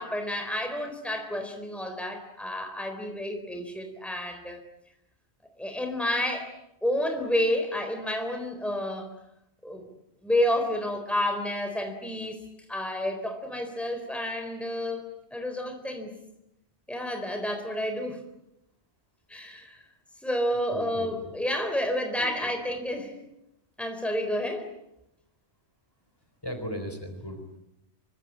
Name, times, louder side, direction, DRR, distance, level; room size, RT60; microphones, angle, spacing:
voice 1, 0.0-4.6 5.6-6.5 6.8-9.1 9.6-9.9 10.2-12.4 12.7-15.0 15.3-16.1 16.9-18.2 19.3-19.8 20.2-23.1 23.8-24.7, left 1 dB, ahead, 5 dB, 4.0 m, -30 dB
voice 2, 20.7-21.3 26.4-27.6, equal, 20° left, 6 dB, 4.0 m, -37 dB
26.5 x 24.0 x 8.6 m, 0.82 s
omnidirectional pair, 1.1 m